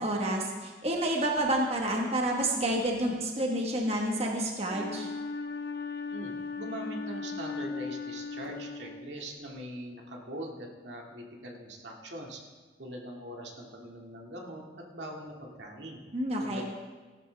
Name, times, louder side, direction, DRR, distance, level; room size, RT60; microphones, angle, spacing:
voice 1, 0.0-5.1 16.1-16.6, right 1 dB, 35° right, 0 dB, 1.4 m, -29 dB
Wind instrument woodwind instrument, 4.7-9.4, left 4 dB, 60° left, 1.1 m, -38 dB
voice 2, 6.1-12.4 12.8-16.0 16.4-16.6, right 1 dB, 80° right, 0 dB, 2.1 m, -42 dB
17.5 x 12.0 x 3.4 m, 1.4 s
head